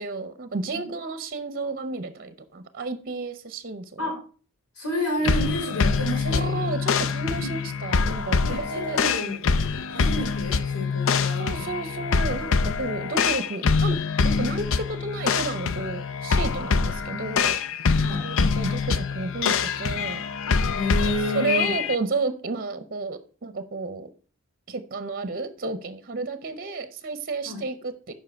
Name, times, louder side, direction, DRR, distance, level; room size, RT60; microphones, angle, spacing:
voice 1, 0.0-4.1 6.2-9.0 11.3-14.0 14.2-17.8 18.2-20.2 21.3-24.1 24.7-28.1, right 3 dB, 45° right, 0.7 m, -32 dB
voice 2, 4.7-6.7 7.3-7.5 8.4-9.4 9.9-11.7 18.0-18.3 20.7-21.7 27.4-27.6, equal, 80° left, 3.5 m, -30 dB
sound 1, 5.2-21.9, left 5 dB, 65° left, 0.5 m, -25 dB
7.4 x 5.5 x 4.5 m
head